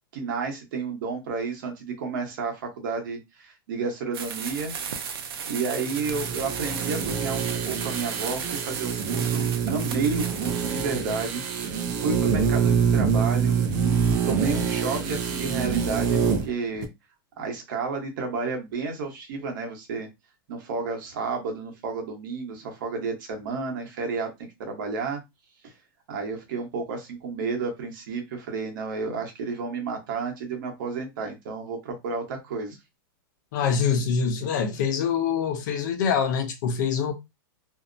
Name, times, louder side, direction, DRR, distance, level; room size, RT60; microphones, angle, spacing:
voice 1, 0.1-4.7 5.2-16.2 16.4-16.9 17.4-20.1 20.5-24.3 24.6-25.2 25.6-25.7 26.1-32.8, right 4 dB, 60° right, 1.0 m, -31 dB
sound 1, 4.1-11.0, right 7 dB, 85° right, 0.6 m, -35 dB
sound 2, 5.9-16.5 16.8-16.9, right 6 dB, 35° right, 0.5 m, -26 dB
voice 2, 33.5-37.1, left 6 dB, 55° left, 0.7 m, -25 dB
2.7 x 2.0 x 2.5 m
supercardioid pair, 165°, 12 cm